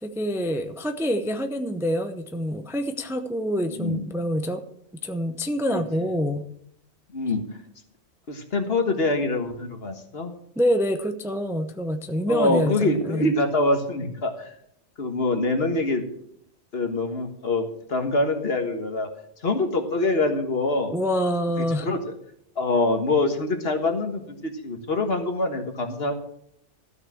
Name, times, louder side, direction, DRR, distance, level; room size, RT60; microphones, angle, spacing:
voice 1, 0.0-4.6 5.0-6.4 10.6-13.3 20.9-21.9, equal, 5° right, 7 dB, 0.6 m, -26 dB
voice 2, 3.7-4.0 5.7-6.2 7.1-7.4 8.3-10.3 12.3-14.6 15.0-16.0 16.7-19.1 19.4-20.9 21.6-22.1 22.5-26.1, left 2 dB, 55° left, 5 dB, 1.7 m, -25 dB
13.5 x 6.1 x 7.0 m, 0.73 s
omnidirectional pair, 1.2 m